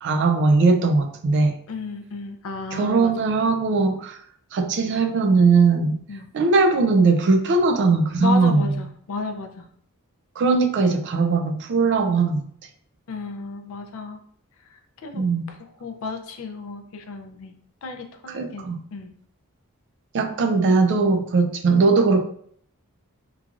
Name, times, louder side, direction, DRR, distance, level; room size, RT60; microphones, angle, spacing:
voice 1, 0.0-1.5 2.7-4.2 4.5-6.0 6.3-8.7 10.4-12.4 15.1-15.5 18.3-18.8 20.1-22.2, right 4 dB, 55° right, 6 dB, 0.3 m, -19 dB
voice 2, 1.7-3.1 6.1-6.3 8.2-9.7 13.1-14.2 15.0-17.6 17.8-19.1, left 3 dB, 65° left, 5 dB, 0.4 m, -33 dB
3.0 x 2.4 x 2.4 m, 0.62 s
head